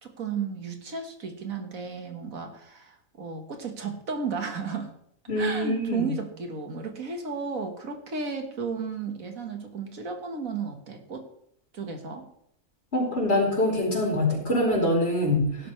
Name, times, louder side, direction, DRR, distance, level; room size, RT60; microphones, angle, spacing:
voice 1, 0.0-4.9 5.4-11.3 11.7-12.3 15.6-15.7, right 5 dB, 80° right, 4 dB, 2.0 m, -34 dB
voice 2, 5.3-6.1 12.9-15.7, left 1 dB, 50° left, -2 dB, 4.4 m, -24 dB
17.0 x 11.5 x 3.3 m, 0.69 s
omnidirectional pair, 1.4 m